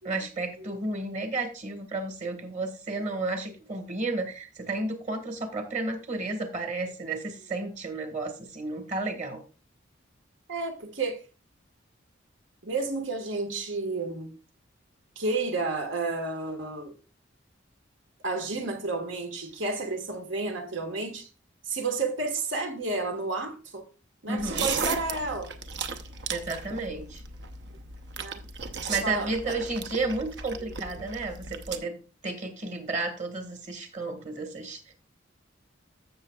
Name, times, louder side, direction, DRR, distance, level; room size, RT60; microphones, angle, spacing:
voice 1, 0.0-9.4 24.3-24.7 26.3-27.2 28.9-32.0 32.2-34.9, right 2 dB, 35° right, 1.7 m, -32 dB
voice 2, 10.5-11.2 12.6-14.3 15.1-16.9 18.2-21.3 21.6-23.8 24.2-25.5 28.2-28.4 29.0-29.6, right 3 dB, 80° right, 1.7 m, -31 dB
sound 1, 24.4-31.8, right 5 dB, 60° right, 0.8 m, -36 dB
14.5 x 6.5 x 2.4 m
head